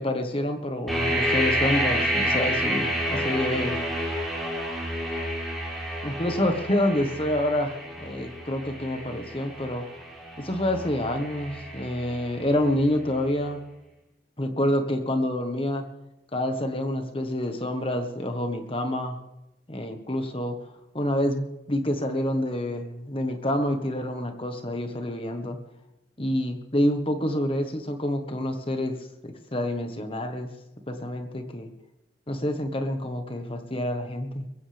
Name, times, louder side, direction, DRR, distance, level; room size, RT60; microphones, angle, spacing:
voice 1, 0.0-3.8 6.0-9.9 10.4-13.6 14.4-15.8 16.3-19.2 19.7-20.6 20.9-25.6 26.2-29.0 29.2-30.5 30.9-31.7 32.3-34.5, left 1 dB, 30° left, 6 dB, 1.4 m, -27 dB
sound 1, 0.9-12.7, equal, ahead, 4.4 m, -29 dB
21.5 x 15.5 x 3.5 m, 0.92 s
head